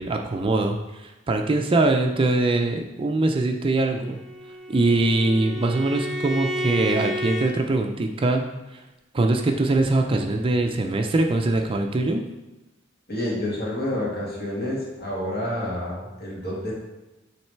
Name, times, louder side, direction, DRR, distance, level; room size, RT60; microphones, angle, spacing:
voice 1, 0.0-4.2 4.7-8.4 9.1-12.2, right 2 dB, 25° right, 3 dB, 0.4 m, -22 dB
Bowed string instrument, 4.0-7.5, equal, ahead, 0.9 m, -31 dB
voice 2, 13.1-16.7, left 1 dB, 55° left, -4 dB, 1.8 m, -29 dB
7.4 x 3.3 x 4.4 m, 1.1 s
head